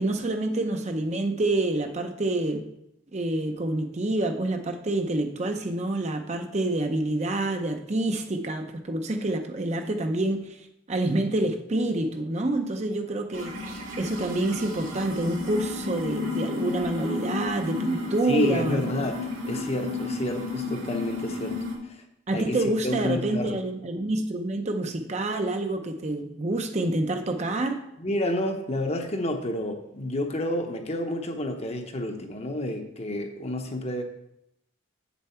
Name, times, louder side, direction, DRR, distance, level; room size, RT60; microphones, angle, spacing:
voice 1, 0.0-2.6 3.1-18.9 22.3-27.8, right 2 dB, 35° right, 6 dB, 0.6 m, -27 dB
sound 1, 13.3-21.8, left 3 dB, 90° right, 2.2 m, -33 dB
voice 2, 18.3-22.0 22.3-23.6 28.0-34.0, left 1 dB, 30° left, 5 dB, 0.8 m, -30 dB
8.0 x 7.0 x 4.4 m, 0.81 s
head